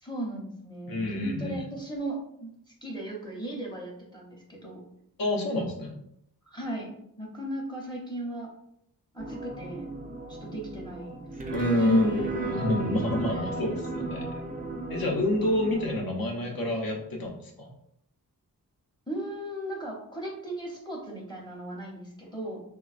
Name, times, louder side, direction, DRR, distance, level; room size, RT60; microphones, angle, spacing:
voice 1, 0.0-2.5 2.8-4.8 6.5-8.5 9.1-9.9 10.3-11.2 11.4-12.0 13.3-13.5 19.1-22.6, right 1 dB, 10° left, -2 dB, 0.7 m, -37 dB
voice 2, 0.9-1.6 5.2-6.0 11.5-14.3 14.9-17.7, left 1 dB, 70° left, 0 dB, 0.7 m, -28 dB
sound 1, 9.2-16.0, right 2 dB, 25° right, 0.4 m, -35 dB
3.2 x 2.2 x 2.4 m, 0.74 s
wide cardioid pair, 105°, 37 cm